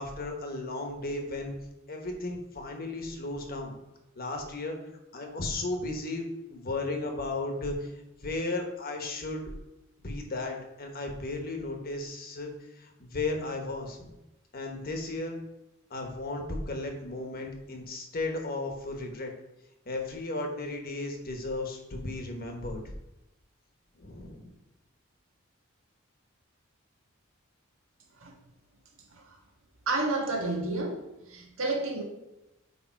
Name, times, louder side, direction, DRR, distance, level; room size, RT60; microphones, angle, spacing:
voice 1, 0.0-1.6 1.9-3.8 4.2-4.8 5.1-7.9 8.2-9.5 10.0-14.1 14.5-15.4 15.9-19.3 19.9-22.9 24.0-24.5, left 2 dB, 45° left, 3 dB, 1.2 m, -35 dB
voice 2, 29.9-31.0 31.3-32.0, right 2 dB, 70° right, 0 dB, 1.5 m, -30 dB
8.9 x 3.4 x 4.5 m, 0.94 s
head